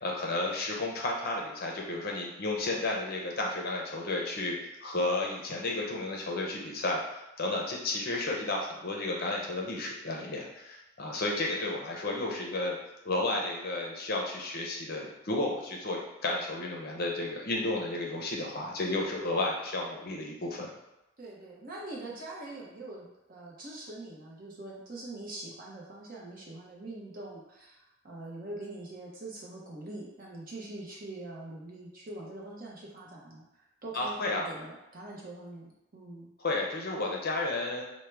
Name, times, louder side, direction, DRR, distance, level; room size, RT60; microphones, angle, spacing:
voice 1, 0.0-12.8 13.0-20.7 33.9-34.5 36.4-37.8, left 2 dB, 45° left, -1 dB, 0.6 m, -32 dB
voice 2, 21.2-33.4 33.8-36.3, right 2 dB, 40° right, -4 dB, 0.8 m, -43 dB
4.5 x 2.1 x 3.3 m, 0.93 s
head